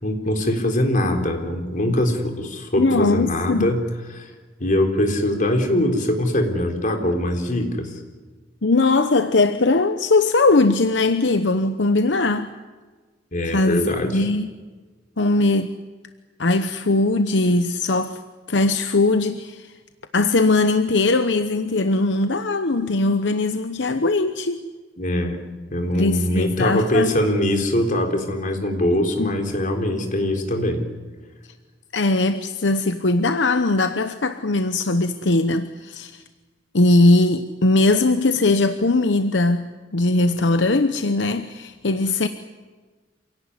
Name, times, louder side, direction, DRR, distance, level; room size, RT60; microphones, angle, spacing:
voice 1, 0.0-3.8 4.1-4.3 4.6-7.9 13.3-14.2 25.0-25.4 25.7-30.8, left 1 dB, 45° left, 3.9 m, -22 dB
voice 2, 2.8-3.7 8.6-12.5 13.5-14.5 15.2-15.8 16.4-18.2 18.5-19.7 20.1-24.6 25.9-27.1 29.2-29.4 31.9-36.2 36.7-42.3, left 2 dB, 75° left, 0.9 m, -20 dB
27.0 x 17.5 x 9.8 m
head